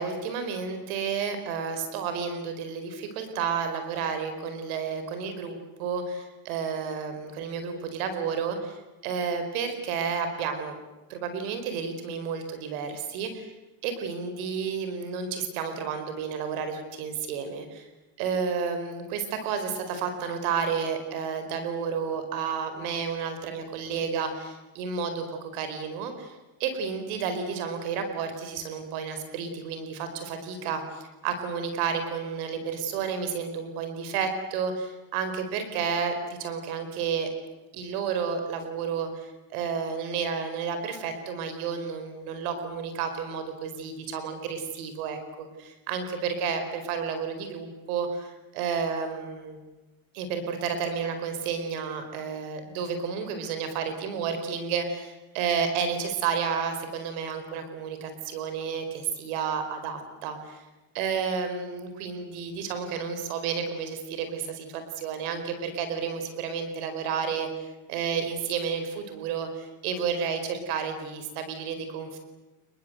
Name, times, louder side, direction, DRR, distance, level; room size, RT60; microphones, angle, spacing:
voice 1, 0.0-10.8 11.1-13.5 13.8-17.9 18.2-36.1 36.4-37.3 37.7-49.6 50.1-60.6 60.9-67.5 67.9-72.2, right 6 dB, 90° right, 8 dB, 4.7 m, -31 dB
28.5 x 22.5 x 8.0 m, 1.1 s
supercardioid pair, 110°, 42 cm